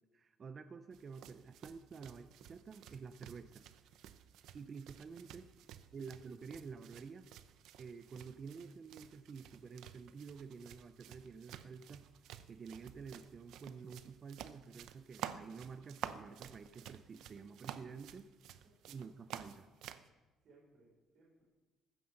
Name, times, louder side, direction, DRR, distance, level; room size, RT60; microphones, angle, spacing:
voice 1, 0.1-3.6 4.5-5.5 5.9-7.3 7.8-12.1 12.5-18.3 18.9-19.7, right 5 dB, 35° right, 10 dB, 0.6 m, -50 dB
sound 1, 0.9-20.1, right 10 dB, 75° right, 0.7 m, -52 dB
voice 2, 18.4-18.8 20.4-21.4, right 2 dB, 55° right, -4 dB, 5.0 m, -67 dB
15.5 x 9.3 x 6.5 m, 1.2 s
cardioid pair, 135°, 0 cm